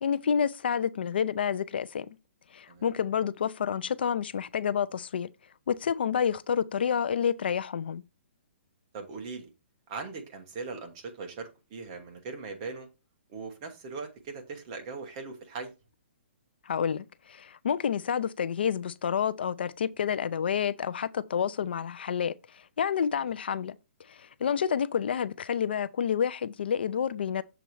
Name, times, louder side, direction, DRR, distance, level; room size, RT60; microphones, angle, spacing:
voice 1, 0.0-2.1 2.5-5.3 5.7-8.0 16.6-23.8 24.1-27.4, left 7 dB, 55° left, 0.4 m, -29 dB
voice 2, 8.9-9.5 9.9-12.9 13.3-15.7 23.2-23.3, right 4 dB, 25° right, 1.1 m, -40 dB
6.9 x 4.0 x 4.6 m
hypercardioid pair, 175°, 7 cm